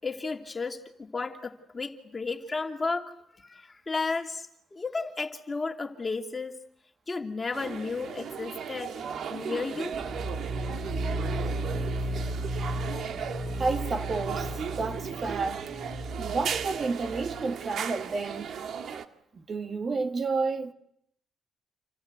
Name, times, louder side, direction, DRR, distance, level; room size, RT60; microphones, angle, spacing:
voice 1, 0.0-3.1 3.4-6.6 7.1-8.9 9.3-9.9, left 4 dB, 25° left, 2.9 m, -33 dB
sound 1, 7.5-19.1, right 7 dB, 65° right, 1.8 m, -36 dB
sound 2, 9.9-17.6, right 1 dB, 5° right, 5.2 m, -34 dB
voice 2, 13.6-14.5 14.8-15.6 16.2-18.5 19.4-20.7, right 4 dB, 40° right, 1.7 m, -30 dB
28.5 x 26.0 x 8.1 m
cardioid pair, 90°, 0 cm